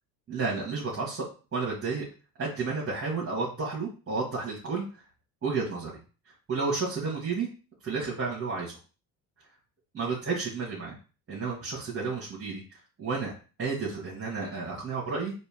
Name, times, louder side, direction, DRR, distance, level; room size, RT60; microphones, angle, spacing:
voice 1, 0.3-2.1 2.4-5.0 5.4-6.0 6.5-7.5 7.8-8.8 9.9-10.9 11.3-13.3 13.6-15.3, right 4 dB, 30° right, -4 dB, 1.9 m, -31 dB
4.3 x 2.8 x 3.6 m, 0.35 s
supercardioid pair, 75°, 45 cm